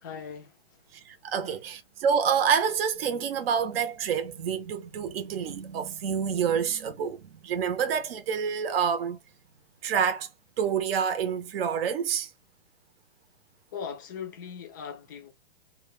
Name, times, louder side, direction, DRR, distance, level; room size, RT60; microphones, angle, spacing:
voice 1, 0.0-0.8 1.4-1.6 13.7-15.3, left 7 dB, 20° left, 0.3 m, -40 dB
voice 2, 1.1-9.2 9.8-10.3 10.6-12.3, right 7 dB, 60° right, 0.7 m, -27 dB
2.3 x 2.2 x 3.2 m
hypercardioid pair, 150°, 33 cm